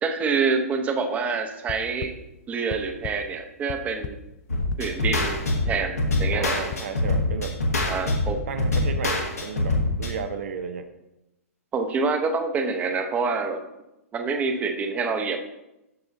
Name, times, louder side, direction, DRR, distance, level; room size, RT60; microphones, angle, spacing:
voice 1, 0.0-2.1 2.5-4.2 4.8-5.4 5.7-6.5 7.9-8.4 11.7-13.6 14.1-15.4, right 4 dB, 20° right, 5 dB, 0.8 m, -26 dB
sound 1, 1.7-2.1 2.7-3.1 3.5-4.1 4.7-5.1 5.7-6.1 6.7-7.1, left 12 dB, 30° left, 0.4 m, -34 dB
sound 2, 4.5-10.1, left 2 dB, 85° left, 1.8 m, -25 dB
voice 2, 6.3-7.6 8.5-10.9, right 6 dB, 60° right, 8 dB, 0.7 m, -33 dB
12.5 x 4.8 x 2.7 m, 0.92 s
figure-of-eight pair, 120°, 8 cm